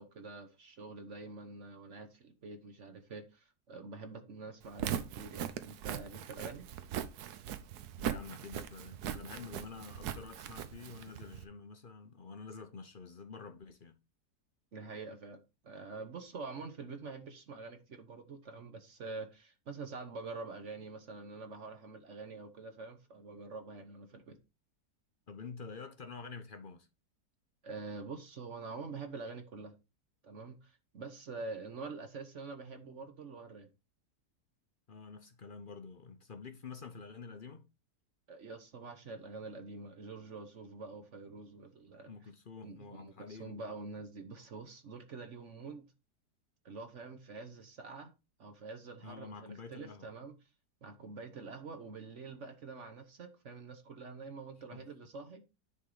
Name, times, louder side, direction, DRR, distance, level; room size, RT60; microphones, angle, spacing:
voice 1, 0.0-6.7 14.7-24.4 27.6-29.7 30.2-33.7 38.3-42.1 42.6-45.9 46.6-48.1 48.4-50.3 50.8-55.4, right 4 dB, 50° right, 1.2 m, -46 dB
Walk footsteps, 4.6-11.4, right 9 dB, 75° right, 1.2 m, -40 dB
voice 2, 8.0-14.0 25.3-26.9 34.9-37.7 42.1-43.6 49.0-50.1 54.7-54.8, left 5 dB, 45° left, 0.7 m, -48 dB
9.8 x 3.8 x 4.9 m
omnidirectional pair, 1.7 m